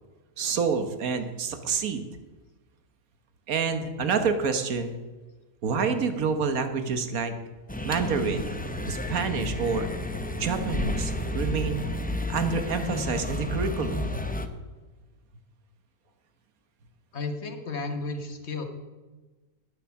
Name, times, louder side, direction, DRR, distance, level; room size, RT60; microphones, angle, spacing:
voice 1, 0.4-2.1 3.5-5.0 5.6-7.3 7.8-8.5 8.9-9.9 10.3-11.8 12.3-14.2, right 5 dB, 80° right, 8 dB, 1.6 m, -28 dB
sound 1, 7.7-14.5, left 1 dB, 10° left, 0.5 m, -31 dB
voice 2, 17.1-18.6, left 3 dB, 50° left, 5 dB, 1.6 m, -33 dB
11.5 x 9.9 x 5.8 m, 1.2 s
omnidirectional pair, 1.5 m